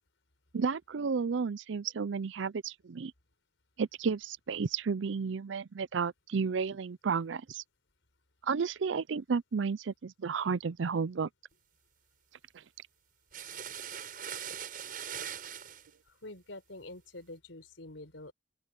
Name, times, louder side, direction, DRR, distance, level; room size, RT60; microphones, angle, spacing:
voice 1, 0.5-3.1 3.8-7.6 8.4-11.3, right 5 dB, 80° right, 0.5 m, -32 dB
sound 1, 13.3-15.9, right 8 dB, 45° right, 7.4 m, -41 dB
voice 2, 16.1-18.3, left 2 dB, 85° left, 4.6 m, -47 dB
open air
head